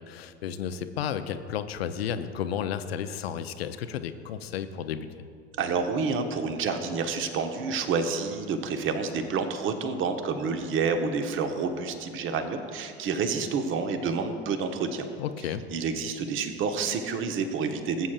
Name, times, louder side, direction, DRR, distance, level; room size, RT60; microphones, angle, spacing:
voice 1, 0.0-5.2 15.2-15.6, left 8 dB, 70° left, 10 dB, 0.7 m, -33 dB
voice 2, 5.6-15.1 15.7-18.1, right 5 dB, 40° right, 6 dB, 1.2 m, -29 dB
19.0 x 8.4 x 2.5 m, 2.3 s
figure-of-eight pair, 75°, 32 cm